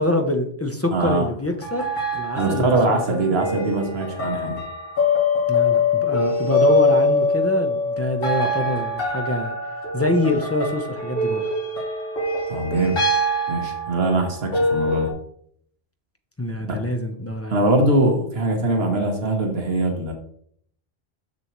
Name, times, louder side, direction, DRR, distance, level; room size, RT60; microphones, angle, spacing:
voice 1, 0.0-1.9 2.1-3.0 5.5-9.6 9.9-11.5 16.4-17.6, left 1 dB, 15° left, 4 dB, 0.6 m, -25 dB
voice 2, 0.9-1.3 2.3-4.6 12.5-13.0 13.5-15.1 16.6-16.8 17.5-20.1, right 2 dB, 70° right, 3 dB, 1.3 m, -22 dB
sound 1, 1.6-15.1, left 2 dB, 60° left, 1.7 m, -23 dB
6.9 x 6.8 x 3.1 m, 0.65 s
omnidirectional pair, 1.1 m